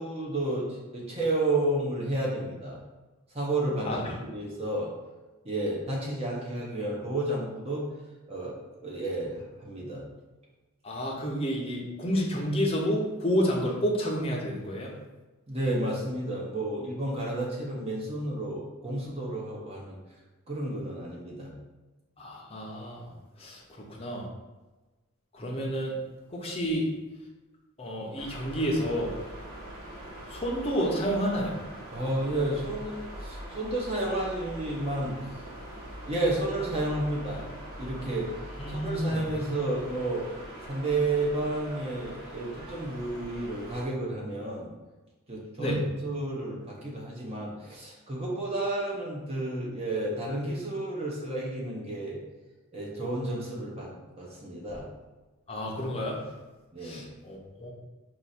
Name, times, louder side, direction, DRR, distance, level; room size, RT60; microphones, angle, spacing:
voice 1, 0.0-2.8 3.3-4.9 5.4-7.9 8.3-8.5 8.8-10.0 15.5-20.0 20.5-21.5 31.9-35.3 36.1-37.5 37.8-38.3 38.7-40.3 40.7-44.7 45.3-52.2 52.7-54.9 56.7-57.1, right 2 dB, 25° right, -4 dB, 0.8 m, -31 dB
voice 2, 10.8-14.9 22.2-23.1 23.4-24.3 25.3-25.9 26.3-26.9 27.8-29.1 30.3-31.6 38.6-39.2 45.6-45.8 55.5-56.2 56.8-57.7, equal, 25° left, -2 dB, 0.7 m, -30 dB
sound 1, 28.2-43.9, right 1 dB, 80° right, 1.5 m, -42 dB
4.6 x 2.5 x 4.1 m, 1.2 s
head